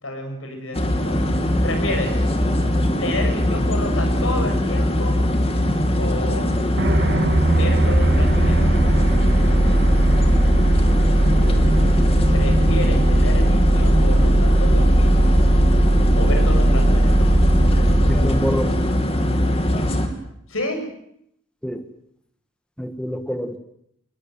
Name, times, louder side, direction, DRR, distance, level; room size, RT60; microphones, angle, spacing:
voice 1, 0.0-2.3 3.0-5.2 6.0-6.5 7.5-8.7 12.3-15.3 16.2-17.3 20.5-20.8, left 1 dB, 85° left, 5 dB, 7.1 m, -30 dB
sound 1, 0.7-20.1, left 1 dB, 30° left, 2.9 m, -21 dB
sound 2, 6.8-19.5, right 1 dB, 55° right, 2.9 m, -18 dB
voice 2, 11.2-11.7 18.1-18.7 21.6-21.8 22.8-23.6, equal, 5° left, 8 dB, 1.8 m, -27 dB
21.5 x 21.5 x 9.3 m, 0.74 s
head